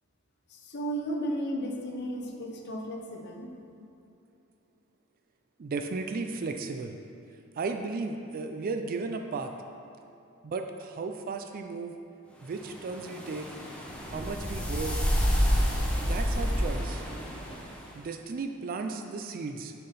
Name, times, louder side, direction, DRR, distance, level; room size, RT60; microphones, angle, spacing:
voice 1, 0.5-3.5, right 1 dB, 55° left, 1 dB, 0.8 m, -34 dB
voice 2, 5.6-6.9 7.6-9.5 10.4-11.9 12.4-13.5 14.1-15.0 16.0-17.0 18.0-19.7, right 4 dB, 45° right, 5 dB, 0.4 m, -35 dB
sound 1, 12.6-17.9, equal, 5° left, 0.8 m, -29 dB
6.5 x 5.8 x 4.1 m, 2.8 s
head